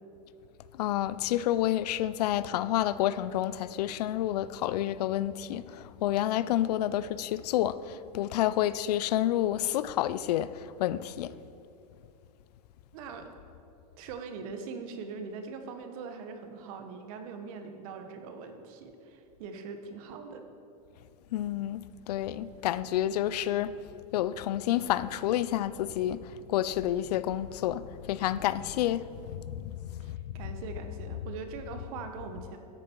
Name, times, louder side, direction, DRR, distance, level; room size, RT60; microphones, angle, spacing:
voice 1, 0.8-11.3 21.3-23.7 24.1-30.2, left 12 dB, 85° left, 0.4 m, -29 dB
voice 2, 12.9-13.4 14.0-20.4 30.0-32.6, right 5 dB, 65° right, 1.2 m, -42 dB
13.0 x 6.6 x 4.5 m
supercardioid pair, 130°, 20 cm